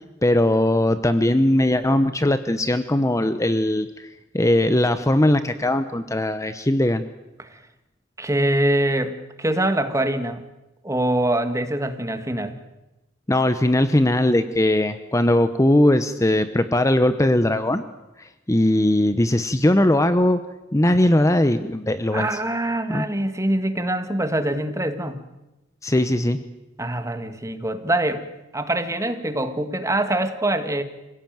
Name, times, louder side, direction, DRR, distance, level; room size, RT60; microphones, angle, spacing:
voice 1, 0.2-4.1 4.3-7.0 13.3-17.8 18.2-20.4 20.7-22.4 22.9-23.0 25.8-26.4, left 1 dB, 15° left, 11 dB, 0.9 m, -19 dB
voice 2, 8.2-10.4 10.8-12.6 22.1-25.2 26.8-28.2 28.5-30.8, right 1 dB, 15° right, 8 dB, 1.8 m, -24 dB
26.0 x 17.5 x 9.3 m, 1.0 s
head